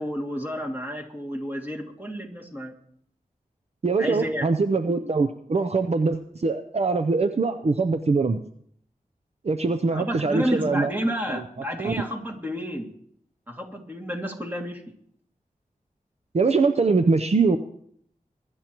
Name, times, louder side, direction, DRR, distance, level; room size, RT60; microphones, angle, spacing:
voice 1, 0.0-2.7 4.0-4.5 9.9-12.9 13.5-14.9, equal, 10° right, 1 dB, 2.3 m, -30 dB
voice 2, 3.8-8.4 9.4-10.9 11.3-11.4 11.8-12.0 16.3-17.6, right 4 dB, 45° right, 8 dB, 0.6 m, -23 dB
22.5 x 11.5 x 3.0 m, 0.66 s
wide cardioid pair, 75°, 15 cm